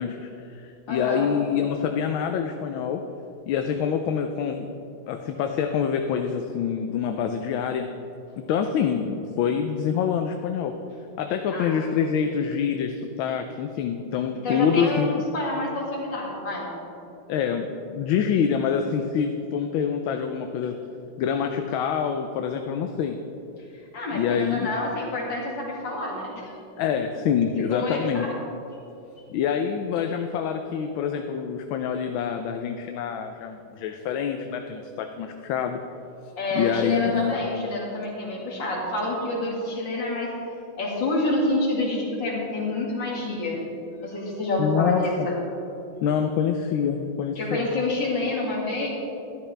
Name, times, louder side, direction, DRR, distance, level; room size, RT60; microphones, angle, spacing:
voice 1, 0.0-3.0 3.5-4.7 5.1-7.9 8.5-10.7 11.2-15.2 17.3-20.8 21.2-23.2 24.1-24.7 26.8-28.3 29.3-35.8 36.5-37.3 44.6-45.3 46.0-47.7, left 7 dB, 80° left, 5 dB, 1.4 m, -26 dB
voice 2, 0.9-1.3 11.5-11.8 14.4-16.7 23.9-26.4 27.7-28.3 36.4-40.3 40.8-43.6 44.0-45.4 47.4-48.9, left 2 dB, 60° left, -3 dB, 2.8 m, -28 dB
13.0 x 12.0 x 3.3 m, 2.8 s
omnidirectional pair, 2.2 m